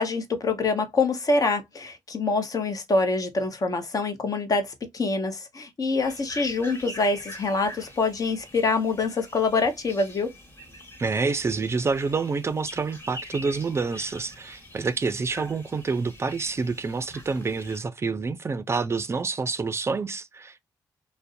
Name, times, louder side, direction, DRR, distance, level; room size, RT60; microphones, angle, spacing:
voice 1, 0.0-10.3, left 3 dB, 50° left, 0.8 m, -25 dB
sound 1, 6.0-17.8, left 1 dB, 30° left, 1.3 m, -44 dB
voice 2, 11.0-20.6, right 4 dB, 35° right, 0.4 m, -28 dB
2.5 x 2.1 x 2.4 m
supercardioid pair, 55°, 8 cm